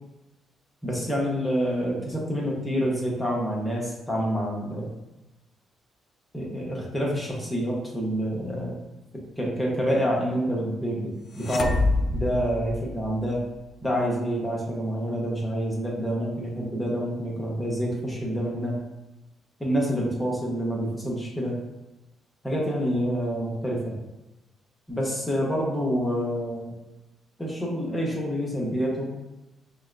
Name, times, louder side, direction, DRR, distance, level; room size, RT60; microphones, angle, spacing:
voice 1, 0.8-4.9 6.3-8.7 9.1-11.1 11.4-11.8 12.1-13.4 13.8-18.8 19.6-21.6 22.4-23.9 24.9-26.7 27.4-29.1, equal, 15° left, -3 dB, 1.1 m, -27 dB
sound 1, 11.4-13.4, left 2 dB, 45° left, 0.4 m, -26 dB
5.8 x 2.2 x 2.6 m, 0.97 s
cardioid pair, 90°, 0 cm